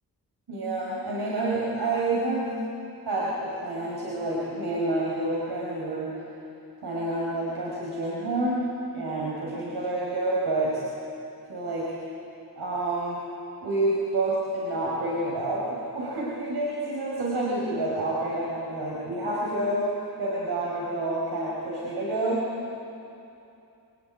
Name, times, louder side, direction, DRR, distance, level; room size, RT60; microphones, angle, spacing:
voice 1, 0.5-2.6 3.0-6.1 6.8-10.8 11.5-12.0 12.6-13.2 13.6-22.5, right 2 dB, 85° right, -6 dB, 5.4 m, -28 dB
28.0 x 22.0 x 9.5 m, 2.8 s
cardioid pair, 65°, 38 cm